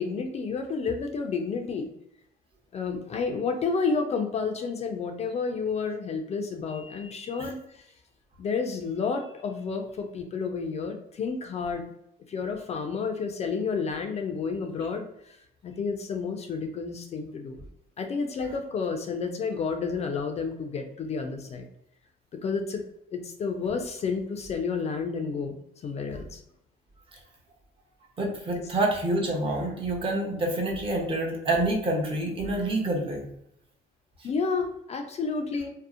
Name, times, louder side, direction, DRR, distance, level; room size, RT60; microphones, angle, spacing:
voice 1, 0.0-1.9 2.7-7.8 8.4-11.9 12.3-15.4 15.6-17.6 18.0-21.7 22.3-22.8 23.1-25.6 25.8-26.4 34.2-35.7, left 5 dB, 40° left, 4 dB, 0.4 m, -30 dB
voice 2, 28.2-33.3 34.2-34.3, right 2 dB, 30° right, -1 dB, 0.7 m, -27 dB
2.7 x 2.0 x 2.4 m, 0.77 s
cardioid pair, 110°, 17 cm